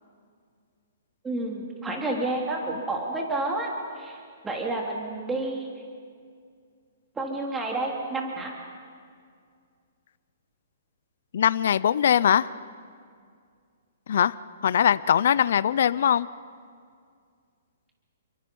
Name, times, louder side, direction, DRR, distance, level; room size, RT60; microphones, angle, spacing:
voice 1, 1.2-3.7 4.0-5.7 7.2-8.5, right 2 dB, 10° right, -1 dB, 3.3 m, -30 dB
voice 2, 11.3-12.5 14.1-14.4 14.6-16.3, left 9 dB, 65° left, 17 dB, 0.6 m, -21 dB
29.5 x 23.0 x 5.5 m, 2.2 s
hypercardioid pair, 155°, 0 cm